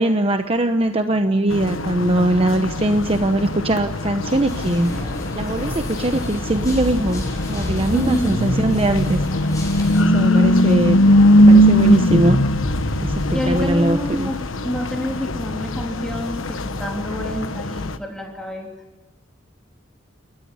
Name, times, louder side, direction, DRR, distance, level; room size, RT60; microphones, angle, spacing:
voice 1, 0.0-5.0 5.4-9.2 10.0-11.0 11.5-12.4 13.0-14.3, right 1 dB, 30° right, 7 dB, 0.9 m, -21 dB
sound 1, 1.5-18.0, equal, 75° left, 1.2 m, -20 dB
sound 2, 4.4-10.0, left 1 dB, 20° left, 7.1 m, -32 dB
voice 2, 7.9-8.4 10.3-11.9 13.3-18.7, left 1 dB, 5° left, 0 dB, 3.2 m, -27 dB
sound 3, 10.9-17.8, equal, 45° left, 6.5 m, -34 dB
29.5 x 14.5 x 9.6 m, 1.1 s
head